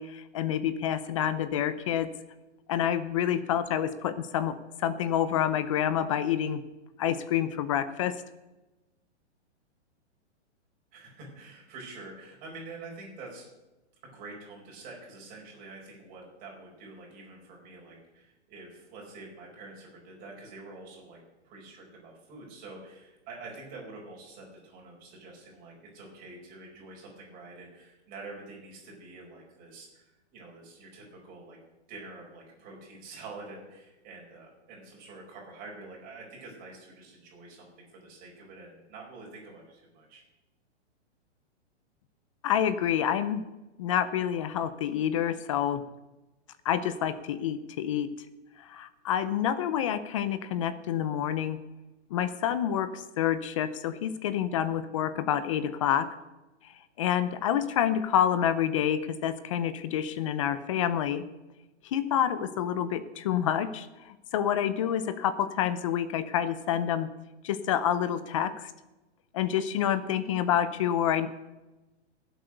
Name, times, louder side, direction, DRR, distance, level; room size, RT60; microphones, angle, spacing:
voice 1, 0.0-2.1 2.7-6.6 7.0-8.1 42.4-43.4 43.8-45.8 46.6-48.1 48.6-51.6 52.1-56.1 57.0-61.2 61.8-67.1 67.4-68.7 69.3-71.3, left 9 dB, 30° left, 13 dB, 0.5 m, -28 dB
voice 2, 10.9-13.5 14.0-31.6 31.9-40.2, right 3 dB, 25° right, -2 dB, 4.8 m, -47 dB
16.5 x 7.9 x 6.4 m, 1.1 s
hypercardioid pair, 160°, 35 cm